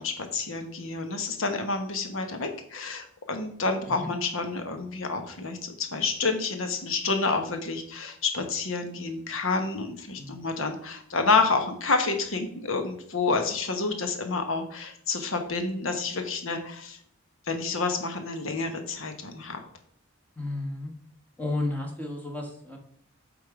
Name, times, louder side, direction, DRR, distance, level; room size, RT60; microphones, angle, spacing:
voice 1, 0.0-17.0 17.5-19.6, left 4 dB, 70° left, 6 dB, 1.1 m, -29 dB
voice 2, 20.4-20.9 21.4-22.8, left 2 dB, 10° left, 1 dB, 1.1 m, -32 dB
8.2 x 3.6 x 4.8 m, 0.62 s
head